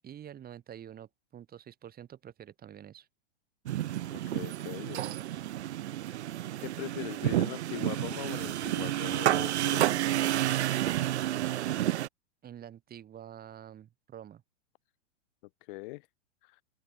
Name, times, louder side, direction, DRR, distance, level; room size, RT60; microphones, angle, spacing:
voice 1, 0.0-3.1 12.4-14.4, right 10 dB, 25° right, 5.5 m, -47 dB
sound 1, 3.7-12.1, right 13 dB, 75° right, 0.9 m, -30 dB
voice 2, 4.1-5.2 6.6-10.2 15.7-16.1 16.4-16.6, left 24 dB, 50° left, 0.8 m, -41 dB
open air
hypercardioid pair, 110°, 34 cm